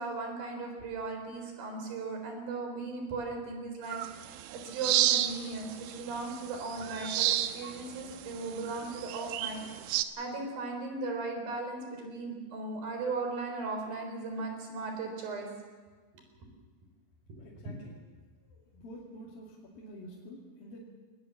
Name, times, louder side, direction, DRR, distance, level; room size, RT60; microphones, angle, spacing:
voice 1, 0.0-9.6 10.2-15.5 17.3-17.4, right 3 dB, 55° right, 3 dB, 5.6 m, -37 dB
sound 1, 3.9-10.0, right 13 dB, 90° right, 3.3 m, -32 dB
voice 2, 17.4-18.0 18.5-20.8, equal, 55° left, -5 dB, 4.1 m, -49 dB
21.5 x 19.5 x 7.4 m, 1.4 s
omnidirectional pair, 5.3 m